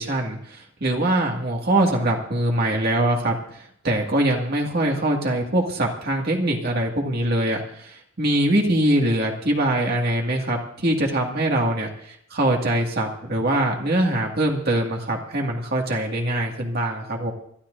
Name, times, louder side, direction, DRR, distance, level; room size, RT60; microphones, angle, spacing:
voice 1, 0.0-3.4 3.8-11.9 12.3-17.3, right 1 dB, 50° right, 0 dB, 2.1 m, -23 dB
27.0 x 13.5 x 2.6 m, 0.67 s
head